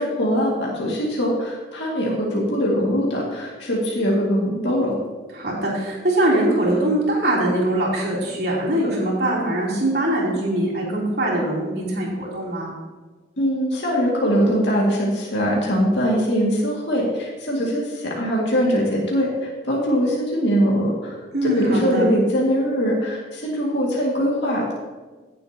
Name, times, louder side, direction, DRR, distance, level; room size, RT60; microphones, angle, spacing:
voice 1, 0.0-5.0 13.4-24.7, equal, 65° left, -4 dB, 2.2 m, -22 dB
voice 2, 5.3-12.7 21.3-22.1, right 1 dB, 55° right, -5 dB, 3.2 m, -22 dB
16.5 x 7.7 x 2.9 m, 1.3 s
head